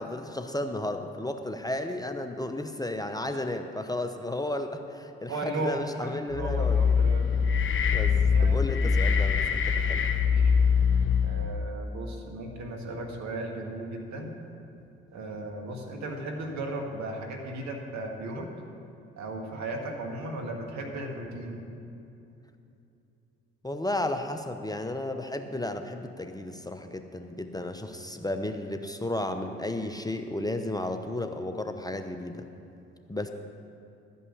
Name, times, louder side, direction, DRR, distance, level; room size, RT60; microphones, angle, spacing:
voice 1, 0.0-7.0 7.9-10.0 23.6-32.5 33.1-33.3, left 1 dB, 10° left, 6 dB, 0.8 m, -33 dB
voice 2, 5.3-7.3 8.3-8.5 10.1-10.5 11.2-14.3 15.1-18.5 19.2-21.6, right 2 dB, 65° right, 2 dB, 1.8 m, -36 dB
sound 1, 6.3-11.6, left 6 dB, 40° left, 1.1 m, -23 dB
12.5 x 5.5 x 8.5 m, 2.8 s
hypercardioid pair, 45°, 31 cm